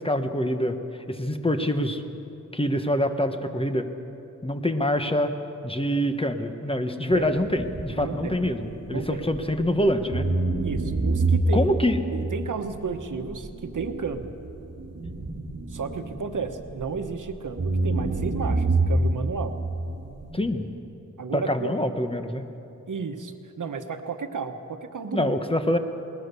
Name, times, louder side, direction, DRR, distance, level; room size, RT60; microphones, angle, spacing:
voice 1, 0.0-2.0 2.5-3.9 4.4-5.3 5.6-10.3 11.5-12.0 20.3-20.7 21.3-22.4 25.1-25.8, left 1 dB, 15° left, 7 dB, 1.1 m, -25 dB
sound 1, 7.1-9.7 10.1-17.2 17.6-20.4, right 2 dB, 50° right, 2.2 m, -28 dB
voice 2, 8.0-8.3 8.9-9.2 10.6-11.7 12.1-14.3 15.7-19.5 21.2-21.7 22.9-25.3, right 5 dB, 75° right, 7 dB, 1.2 m, -32 dB
21.0 x 19.5 x 6.9 m, 2.9 s
wide cardioid pair, 100°, 31 cm